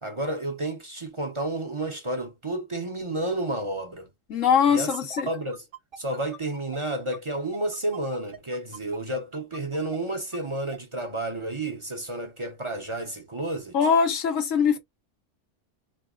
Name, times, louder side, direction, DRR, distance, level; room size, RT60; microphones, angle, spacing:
voice 1, 0.0-4.1 4.7-4.9 5.3-5.6 6.0-13.8, right 1 dB, 30° right, 0.6 m, -31 dB
voice 2, 4.3-5.3 13.7-14.8, left 6 dB, 85° left, 1.4 m, -22 dB
sound 1, 4.5-10.8, right 4 dB, 50° right, 1.0 m, -43 dB
3.9 x 3.1 x 2.4 m
omnidirectional pair, 1.3 m